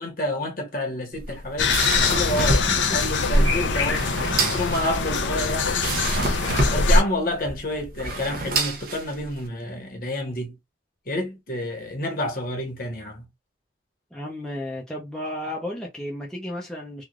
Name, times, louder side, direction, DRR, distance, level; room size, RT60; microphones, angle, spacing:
voice 1, 0.0-2.6 2.9-4.0 4.4-6.4 6.7-10.5 11.1-13.3, left 1 dB, 50° left, 1.2 m, -29 dB
sound 1, 1.1-9.5, right 2 dB, 50° right, 0.7 m, -28 dB
sound 2, 1.6-7.0, left 3 dB, 85° left, 0.6 m, -22 dB
voice 2, 2.7-3.1 14.1-17.0, left 1 dB, 5° left, 0.6 m, -33 dB
3.2 x 2.4 x 2.4 m
head